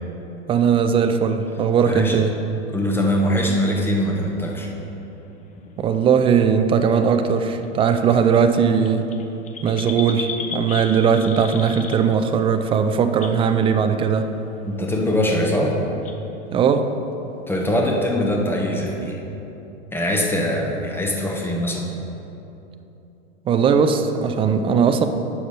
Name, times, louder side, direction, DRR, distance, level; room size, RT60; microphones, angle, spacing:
voice 1, 0.5-2.3 5.8-9.0 9.6-14.3 16.5-16.9 23.5-25.1, right 6 dB, 15° right, 8 dB, 0.3 m, -19 dB
voice 2, 1.9-2.2 2.7-4.7 14.6-15.8 17.5-19.2 19.9-21.9, left 1 dB, 5° left, 0 dB, 1.1 m, -22 dB
sound 1, 2.7-4.4 5.3-5.4 5.7-5.9 7.0-7.3 7.6-7.7 7.9-8.0 8.2-12.3 12.6-12.7 13.1-13.4 14.0-14.3 14.8-14.9 15.1-15.2 15.5-15.6 16.0-16.2, left 5 dB, 20° left, 0.6 m, -35 dB
9.0 x 6.9 x 4.3 m, 3.0 s
hypercardioid pair, 105°, 35 cm